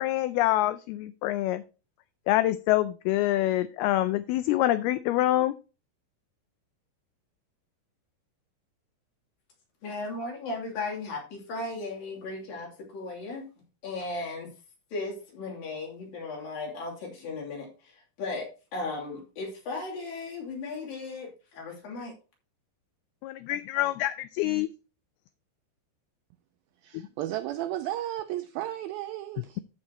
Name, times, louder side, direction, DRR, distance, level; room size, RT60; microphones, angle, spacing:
voice 1, 0.0-1.6 2.3-5.5 23.2-24.7 26.9-27.0, left 15 dB, 85° left, 2.2 m, -26 dB
voice 2, 9.8-13.5 13.8-14.5 14.9-22.1, left 3 dB, 60° left, 4.5 m, -36 dB
voice 3, 26.8-29.6, right 13 dB, 90° right, 2.1 m, -34 dB
13.5 x 6.3 x 2.9 m
omnidirectional pair, 4.9 m